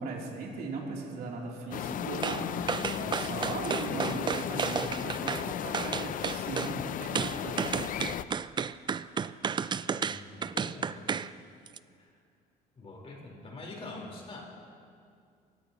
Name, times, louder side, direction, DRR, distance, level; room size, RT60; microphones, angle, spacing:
voice 1, 0.0-7.6, right 3 dB, 65° right, -3 dB, 3.4 m, -38 dB
sound 1, 1.7-8.2, left 10 dB, 55° left, 0.5 m, -35 dB
sound 2, 2.2-2.4 2.7-5.4 5.7-6.7 7.2-11.3 11.7-11.8, right 6 dB, 25° right, 0.4 m, -32 dB
voice 2, 9.9-11.1 12.0-12.1 12.8-14.4, left 2 dB, 35° left, -2 dB, 4.4 m, -44 dB
26.5 x 16.0 x 3.1 m, 2.3 s
cardioid pair, 110°, 17 cm